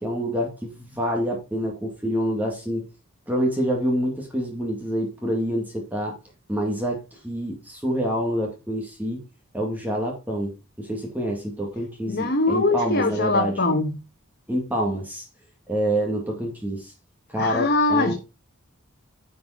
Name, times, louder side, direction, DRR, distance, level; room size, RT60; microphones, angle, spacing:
voice 1, 0.0-2.9 3.3-6.2 6.5-9.2 9.5-10.5 10.8-13.6 14.5-15.3 15.7-16.9 17.3-18.1, equal, 10° right, 2.1 m, -27 dB
voice 2, 12.1-14.0 17.4-18.1, left 2 dB, 50° left, 1.5 m, -22 dB
10.5 x 5.3 x 5.0 m
head